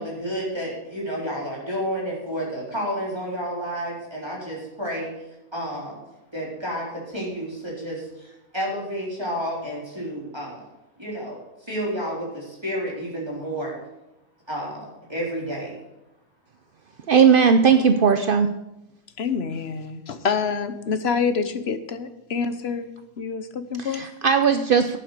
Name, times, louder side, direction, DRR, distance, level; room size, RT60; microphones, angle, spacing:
voice 1, 0.0-5.1 5.5-6.0 6.3-8.3 8.5-10.6 11.0-11.4 11.7-13.8 14.5-15.8, equal, 15° right, -4 dB, 3.9 m, -30 dB
voice 2, 17.1-18.5 23.8-25.0, right 6 dB, 65° right, 8 dB, 0.5 m, -18 dB
voice 3, 19.2-22.9 23.2-24.1, left 5 dB, 45° left, 10 dB, 1.0 m, -27 dB
11.0 x 9.0 x 6.7 m, 0.91 s
omnidirectional pair, 1.7 m